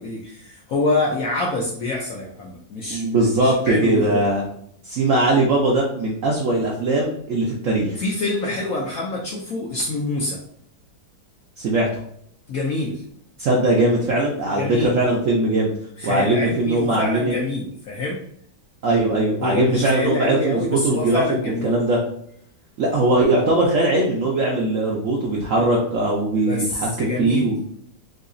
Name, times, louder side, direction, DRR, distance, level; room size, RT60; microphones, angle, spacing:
voice 1, 0.0-4.2 8.0-10.4 12.5-13.0 14.5-15.0 16.0-18.3 19.4-21.7 26.4-27.5, left 2 dB, 70° left, -2 dB, 0.8 m, -26 dB
voice 2, 2.9-4.4 4.9-8.0 11.6-11.9 13.4-15.7 16.0-17.4 18.8-22.0 22.8-27.6, right 2 dB, 65° right, -2 dB, 0.8 m, -20 dB
4.0 x 2.8 x 2.5 m, 0.67 s
omnidirectional pair, 2.0 m